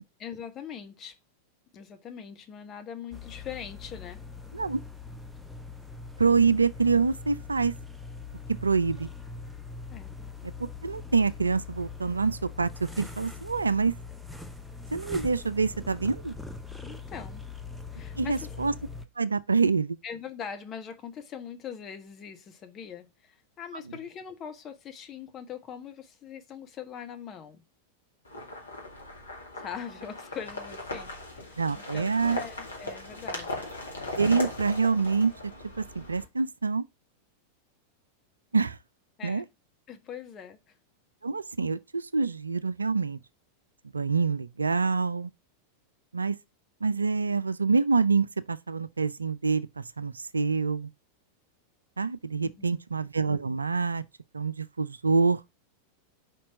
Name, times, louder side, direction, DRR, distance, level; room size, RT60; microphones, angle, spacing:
voice 1, 0.2-1.1 1.7-4.2 9.9-10.2 16.8-17.5 17.9-18.5 20.0-27.6 29.5-33.7 39.2-39.5 39.9-40.7 52.4-52.8, left 7 dB, 30° left, 1.4 m, -42 dB
sound 1, 3.1-19.1, left 4 dB, ahead, 0.8 m, -42 dB
voice 2, 6.2-7.7 8.6-9.1 10.8-13.9 14.9-16.3 18.2-18.7 19.2-20.0 31.6-32.4 34.2-35.3 35.8-36.8 38.5-38.8 39.2-39.4 41.2-43.2 43.9-45.3 46.1-46.4 46.8-50.9 52.0-54.0 54.3-55.4, right 4 dB, 75° right, 0.4 m, -26 dB
sound 2, 28.2-36.2, left 2 dB, 75° left, 2.0 m, -38 dB
5.2 x 4.4 x 6.1 m
figure-of-eight pair, 90°, 0 cm